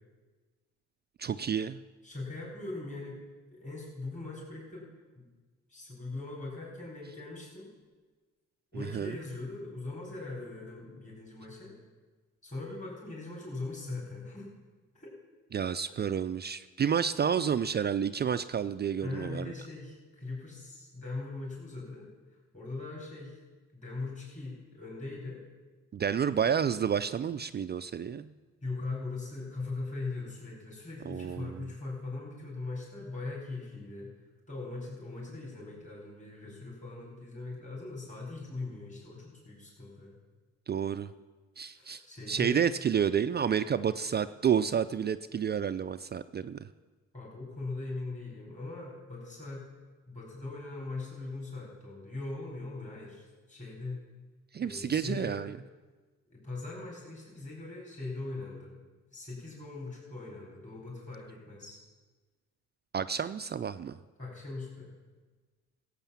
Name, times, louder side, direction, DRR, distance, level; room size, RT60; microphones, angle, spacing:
voice 1, 1.2-1.8 8.8-9.1 15.5-19.5 25.9-28.3 31.1-31.6 40.7-41.1 41.6-42.0 42.3-46.7 54.5-55.6 62.9-64.0, right 8 dB, 35° right, 12 dB, 0.4 m, -30 dB
voice 2, 2.0-3.2 3.5-4.9 5.1-5.3 5.7-7.7 8.7-11.8 12.4-14.5 14.9-15.1 17.0-17.1 19.0-23.4 23.7-25.4 28.6-34.1 34.5-40.1 41.7-42.6 47.1-49.7 50.1-54.0 54.6-55.4 56.3-58.8 59.1-61.8 64.2-64.9, left 3 dB, 25° left, -4 dB, 4.8 m, -40 dB
15.0 x 8.2 x 7.2 m, 1.3 s
cardioid pair, 90°, 30 cm